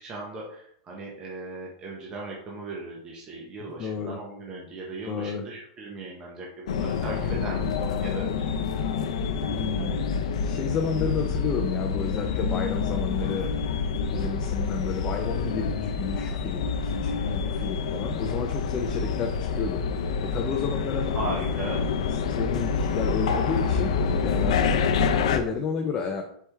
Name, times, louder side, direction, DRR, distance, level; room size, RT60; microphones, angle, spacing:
voice 1, 0.0-8.8 21.1-21.9, right 2 dB, 20° right, -3 dB, 0.8 m, -37 dB
voice 2, 3.8-4.2 5.1-5.5 7.2-7.4 9.5-9.9 10.4-13.5 14.0-19.9 20.2-21.2 22.1-24.0 24.2-26.2, left 6 dB, 25° left, 3 dB, 0.4 m, -31 dB
sound 1, 6.7-25.4, left 5 dB, 75° left, 0.5 m, -27 dB
4.5 x 3.3 x 3.3 m, 0.66 s
supercardioid pair, 155°, 3 cm